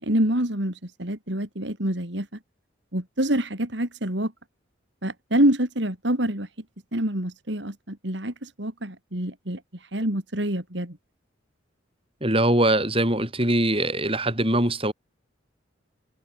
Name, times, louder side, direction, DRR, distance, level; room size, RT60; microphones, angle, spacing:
voice 1, 0.0-2.3 2.9-4.3 5.0-6.5 6.9-11.0, right 1 dB, 60° right, 4.0 m, -26 dB
voice 2, 12.2-14.9, right 1 dB, 30° right, 7.8 m, -22 dB
head